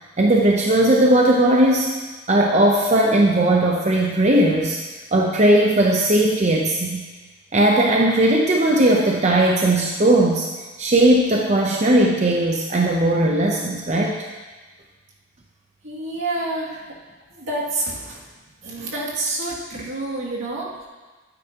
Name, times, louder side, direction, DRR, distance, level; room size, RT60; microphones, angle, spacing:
voice 1, 0.2-1.9 2.3-4.8 5.1-7.1 7.5-10.5 10.8-14.2, right 1 dB, 35° right, 0 dB, 0.6 m, -17 dB
voice 2, 15.8-16.8 17.3-18.2 18.6-20.9, right 2 dB, 75° right, -5 dB, 2.4 m, -28 dB
12.5 x 9.2 x 2.9 m, 1.3 s
head